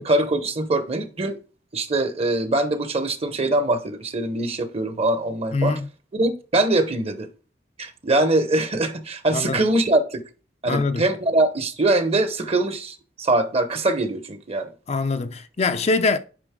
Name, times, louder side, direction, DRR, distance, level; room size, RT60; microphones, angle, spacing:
voice 1, 0.0-1.4 1.7-5.8 6.1-7.3 7.8-10.2 10.6-14.7, right 2 dB, 35° right, 1.0 m, -23 dB
voice 2, 5.5-5.9 9.3-9.6 10.7-11.0 14.9-16.2, left 3 dB, 40° left, 0.5 m, -23 dB
8.7 x 5.4 x 3.7 m
head